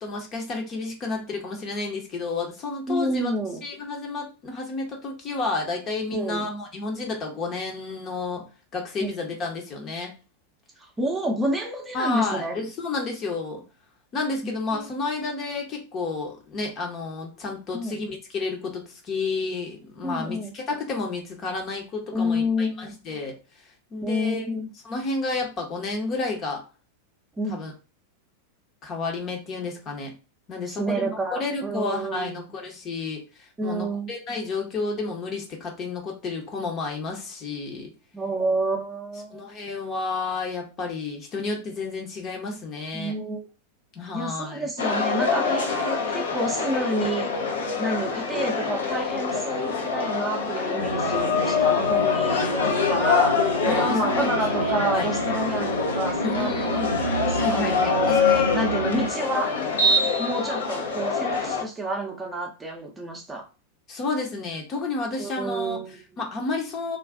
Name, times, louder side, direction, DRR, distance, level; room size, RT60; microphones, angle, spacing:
voice 1, 0.0-3.3 3.6-8.4 8.7-10.1 11.9-13.6 14.1-23.3 23.9-24.5 24.8-26.6 27.5-27.7 28.8-30.1 30.5-37.9 39.3-43.1 43.9-44.7 53.7-54.3 54.6-55.1 56.2-56.9 57.4-58.4 63.9-65.8 66.2-67.0, left 3 dB, 30° left, 1 dB, 0.8 m, -31 dB
voice 2, 2.9-3.6 6.1-6.5 9.0-9.1 11.0-12.6 14.4-14.8 17.7-18.0 20.0-20.5 22.1-22.9 24.0-24.7 27.4-27.6 30.7-32.4 33.6-34.1 38.1-39.4 42.9-43.5 44.1-47.3 47.8-56.8 57.3-58.2 58.5-59.5 60.2-63.4 65.2-66.0, right 1 dB, 15° right, 0 dB, 0.7 m, -29 dB
sound 1, 44.8-61.6, left 4 dB, 65° left, 0.6 m, -25 dB
sound 2, 50.8-59.1, equal, 90° right, 0.4 m, -29 dB
2.5 x 2.4 x 3.5 m, 0.33 s
figure-of-eight pair, 90°, 0 cm